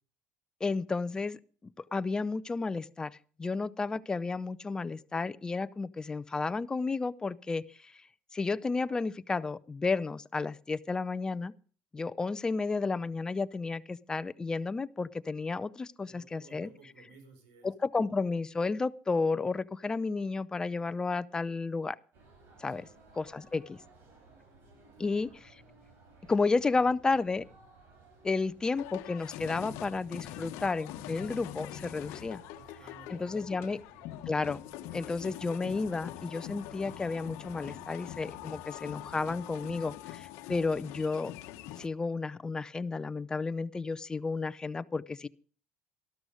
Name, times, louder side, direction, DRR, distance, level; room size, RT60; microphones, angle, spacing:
voice 1, 0.6-1.4 1.9-8.0 8.3-11.5 11.9-16.7 17.6-22.0 22.6-22.9 23.2-23.8 25.0-25.3 26.3-27.4 28.2-32.4 33.1-33.8 34.3-34.6 34.9-41.3 41.8-45.3, left 4 dB, 15° left, 15 dB, 0.5 m, -32 dB
voice 2, 16.0-17.7 22.7-23.0 24.9-25.3 32.5-33.8, right 3 dB, 90° right, 7 dB, 4.8 m, -56 dB
sound 1, 22.1-39.8, right 4 dB, 50° right, 5.7 m, -59 dB
sound 2, 28.8-41.9, left 13 dB, 80° left, 1.0 m, -44 dB
13.0 x 12.5 x 5.0 m, 0.41 s
cardioid pair, 125°, 4 cm